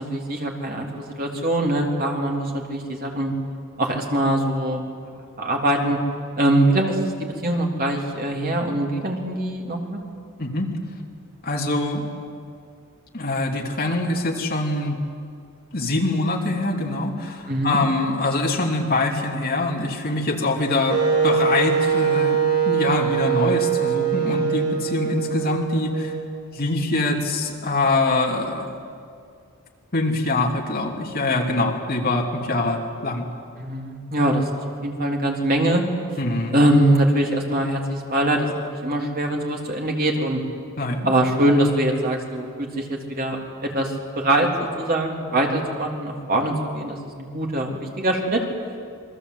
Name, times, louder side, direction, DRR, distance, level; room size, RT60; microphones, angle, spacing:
voice 1, 0.0-3.3 3.8-4.8 5.4-6.0 6.4-7.0 7.4-10.0 17.5-17.8 33.6-35.8 36.5-40.4 41.1-48.4, right 1 dB, 40° right, 0 dB, 3.5 m, -23 dB
voice 2, 11.4-12.1 13.1-15.0 15.7-22.4 22.6-26.1 26.5-28.8 29.9-33.3 36.2-36.6 40.8-41.1, left 2 dB, 45° left, 1 dB, 2.9 m, -24 dB
Wind instrument woodwind instrument, 20.9-26.7, right 6 dB, 75° right, 4.1 m, -23 dB
27.5 x 23.0 x 8.2 m, 2.2 s
head